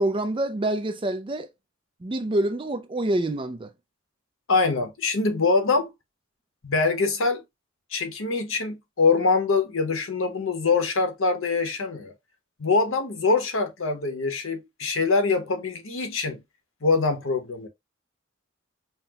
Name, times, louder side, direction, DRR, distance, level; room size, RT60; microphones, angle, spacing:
voice 1, 0.0-1.5 2.0-3.7, right 1 dB, 25° right, 0.4 m, -26 dB
voice 2, 4.5-5.9 6.6-7.4 7.9-12.1 12.6-16.4 16.8-17.7, left 4 dB, 70° left, 1.0 m, -24 dB
5.6 x 2.1 x 2.8 m
head